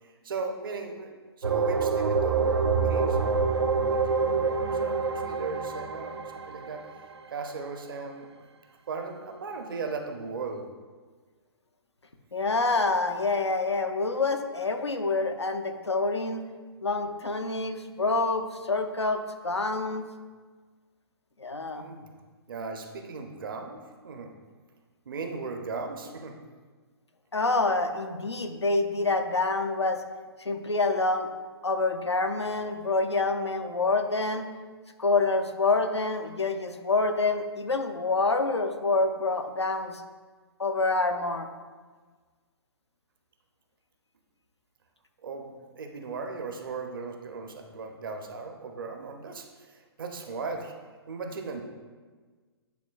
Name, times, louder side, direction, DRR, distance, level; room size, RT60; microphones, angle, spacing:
voice 1, 0.2-1.1 1.4-6.8 7.3-8.3 8.9-10.7 21.6-22.1 22.5-24.3 25.1-26.4 45.2-49.5 49.7-50.7 51.1-51.6, right 4 dB, 55° right, 5 dB, 0.8 m, -37 dB
sound 1, 1.4-7.1, right 4 dB, 75° right, 0.4 m, -26 dB
voice 2, 12.3-16.4 16.8-20.0 21.4-21.9 27.3-30.0 30.4-31.3 31.6-34.5 35.0-40.0 40.6-41.5, left 3 dB, 85° left, 6 dB, 0.6 m, -27 dB
9.2 x 4.3 x 2.3 m, 1.4 s
figure-of-eight pair, 125°, 14 cm